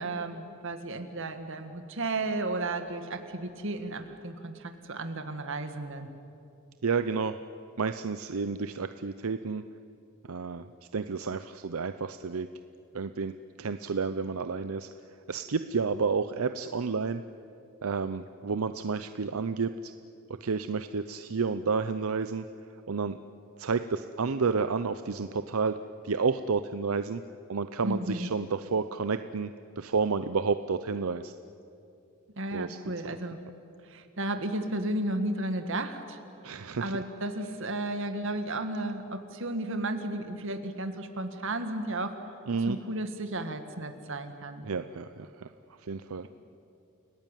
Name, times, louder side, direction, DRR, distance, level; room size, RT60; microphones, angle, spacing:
voice 1, 0.0-6.1 27.8-28.3 32.4-33.4 33.9-36.2 36.8-42.2 42.7-44.6, right 2 dB, 65° right, 8 dB, 2.0 m, -33 dB
voice 2, 6.8-7.4 7.8-9.6 10.3-10.7 10.9-12.5 12.9-13.3 13.6-14.9 15.3-17.2 17.8-19.9 20.4-22.4 22.9-23.2 23.6-27.2 27.5-31.3 32.5-32.8 36.4-36.9 42.5-42.8 44.6-45.5 45.8-46.3, right 5 dB, 85° right, 11 dB, 0.7 m, -30 dB
30.0 x 18.0 x 9.1 m, 2.7 s
head